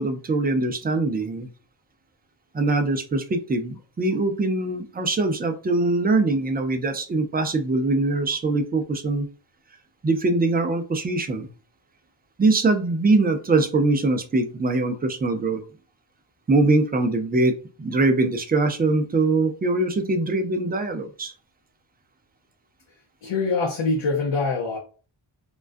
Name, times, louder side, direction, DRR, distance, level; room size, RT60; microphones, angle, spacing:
voice 1, 0.0-1.5 2.5-9.3 10.0-11.5 12.4-15.6 16.5-17.5 17.8-21.3, right 2 dB, 20° right, 6 dB, 0.3 m, -22 dB
voice 2, 23.2-24.8, left 3 dB, 75° left, 0 dB, 0.7 m, -24 dB
2.3 x 2.2 x 2.4 m, 0.37 s
wide cardioid pair, 100°, 48 cm